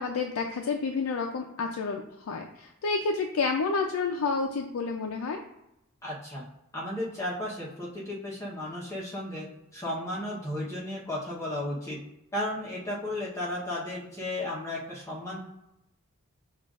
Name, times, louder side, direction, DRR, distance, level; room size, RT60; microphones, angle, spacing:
voice 1, 0.0-5.4, left 4 dB, 80° left, 3 dB, 0.4 m, -30 dB
voice 2, 6.0-6.4 6.7-9.5 9.7-12.0 12.3-15.4, left 1 dB, 15° left, -6 dB, 0.9 m, -34 dB
6.8 x 2.4 x 2.4 m, 0.87 s
head